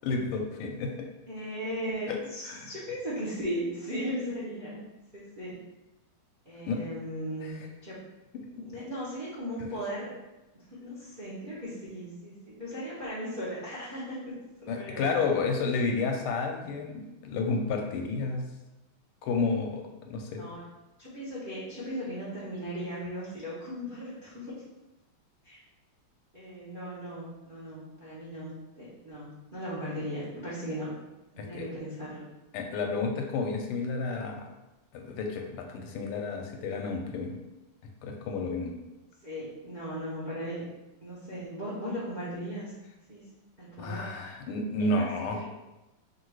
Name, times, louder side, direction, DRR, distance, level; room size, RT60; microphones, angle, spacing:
voice 1, 0.0-1.1 2.1-2.2 2.4-2.7 6.7-6.8 8.3-8.7 14.7-18.5 19.2-20.5 31.4-31.7 32.5-34.5 34.9-37.4 38.0-38.7 43.8-45.4, left 3 dB, 85° left, 3 dB, 1.5 m, -31 dB
voice 2, 1.3-4.8 5.1-5.6 6.4-8.1 8.5-10.1 10.7-14.3 14.6-15.2 20.4-20.6 21.0-24.6 25.4-25.6 26.3-30.9 31.3-32.3 39.2-40.6 41.0-42.7 43.1-43.2 43.6-44.1 44.8-45.4, equal, 50° right, -8 dB, 0.5 m, -37 dB
3.7 x 2.5 x 4.5 m, 1.0 s
omnidirectional pair, 2.4 m